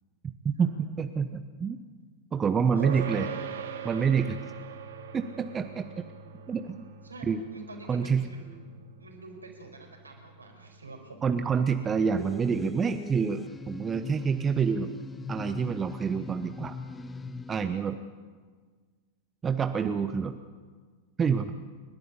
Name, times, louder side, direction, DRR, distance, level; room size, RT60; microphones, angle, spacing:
voice 1, 0.4-1.8 2.3-3.3 3.8-4.4 5.1-5.8 6.5-6.8 7.3-7.4 7.9-8.3 11.2-14.9 15.3-16.8 17.5-18.0 19.4-20.3 21.2-21.5, right 6 dB, 20° right, 9 dB, 1.0 m, -27 dB
sound 1, 2.8-12.5, right 8 dB, 60° right, 1.7 m, -42 dB
voice 2, 2.8-3.6 7.0-11.2, right 3 dB, 80° right, 1 dB, 5.0 m, -46 dB
sound 2, 12.2-17.6, left 3 dB, 15° left, 1.0 m, -40 dB
29.5 x 12.0 x 8.5 m, 1.5 s
figure-of-eight pair, 90°, 0 cm